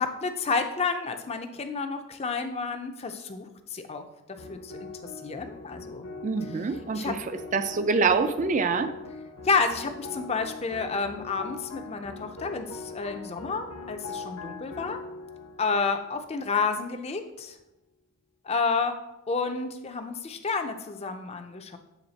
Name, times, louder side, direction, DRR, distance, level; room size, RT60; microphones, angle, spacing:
voice 1, 0.0-4.0 4.5-4.9 5.2-6.1 6.9-7.1 9.4-15.0 15.6-17.5 18.5-19.0 19.3-21.8, left 4 dB, 30° left, 7 dB, 0.4 m, -30 dB
sound 1, 4.4-16.8, left 3 dB, 80° left, 0.7 m, -42 dB
voice 2, 6.2-8.9, right 4 dB, 35° right, 10 dB, 0.4 m, -26 dB
7.1 x 3.5 x 4.0 m, 0.93 s
head